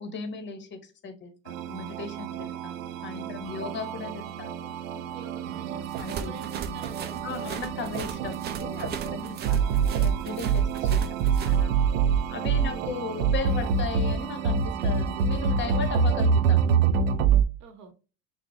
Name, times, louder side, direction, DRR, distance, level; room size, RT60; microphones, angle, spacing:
voice 1, 0.0-5.0 6.0-6.3 7.2-11.8 12.3-16.6, left 5 dB, 30° left, 0.8 m, -37 dB
sound 1, 1.5-17.4, right 6 dB, 80° right, 0.6 m, -26 dB
voice 2, 5.1-7.5 9.2-9.4 12.7-12.9 17.6-17.9, right 5 dB, 45° right, 1.0 m, -47 dB
sound 2, 5.9-11.6, right 7 dB, 25° right, 0.4 m, -38 dB
5.9 x 2.1 x 2.6 m
hypercardioid pair, 95°, 39 cm